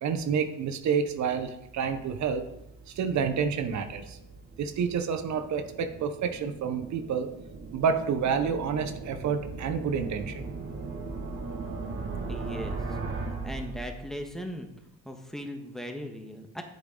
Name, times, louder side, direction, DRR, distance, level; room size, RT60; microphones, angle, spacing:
voice 1, 0.0-2.4 2.9-4.2 4.6-7.3 7.7-10.4, right 6 dB, 65° right, 8 dB, 0.9 m, -29 dB
sound 1, 1.5-14.3, right 3 dB, 45° right, 1.8 m, -39 dB
voice 2, 12.3-12.8 13.3-14.7 15.0-16.6, equal, ahead, 4 dB, 1.4 m, -38 dB
9.2 x 7.9 x 3.9 m, 0.82 s
cardioid pair, 90°, 30 cm